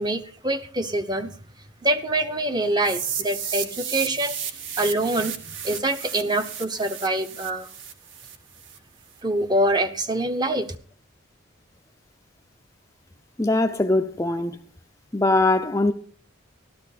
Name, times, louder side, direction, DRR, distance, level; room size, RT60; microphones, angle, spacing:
voice 1, 0.0-1.3 1.8-4.3 4.8-7.7 9.2-10.7, right 1 dB, 20° right, 0.8 m, -25 dB
sound 1, 2.8-8.8, right 8 dB, 65° right, 1.6 m, -33 dB
voice 2, 13.4-14.6 15.1-15.9, left 2 dB, 15° left, 0.5 m, -21 dB
13.0 x 13.0 x 4.1 m
head